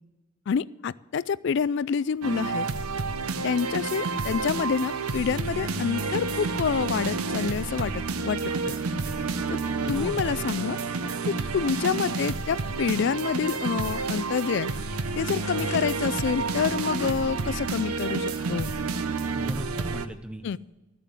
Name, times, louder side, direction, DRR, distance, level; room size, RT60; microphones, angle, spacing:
voice 1, 0.5-2.7 3.4-8.4 8.7-8.8 9.5-9.6 9.9-10.8 11.3-14.7 15.2-18.7 20.4-20.6, left 6 dB, 55° left, 19 dB, 0.3 m, -27 dB
sound 1, 2.2-20.1, right 4 dB, 90° right, 0.7 m, -30 dB
sound 2, 3.5-18.9, right 1 dB, 25° right, 3.7 m, -50 dB
voice 2, 9.8-10.3 15.6-15.9 19.3-20.6, equal, 5° right, 8 dB, 0.8 m, -38 dB
sound 3, 13.9-14.7 15.4-16.3 16.7-17.9, left 5 dB, 30° left, 1.2 m, -49 dB
13.5 x 7.4 x 8.3 m, 1.1 s
head